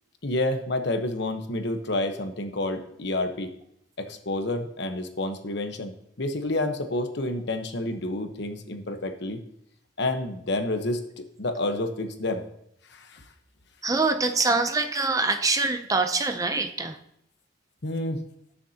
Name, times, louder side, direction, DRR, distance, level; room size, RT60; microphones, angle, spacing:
voice 1, 0.2-3.5 4.0-5.9 6.2-9.4 10.0-12.4 12.9-13.2 17.8-18.2, left 2 dB, 60° left, 6 dB, 1.1 m, -29 dB
voice 2, 13.8-17.0, right 3 dB, 20° right, 7 dB, 0.7 m, -24 dB
19.0 x 7.2 x 2.9 m, 0.74 s
head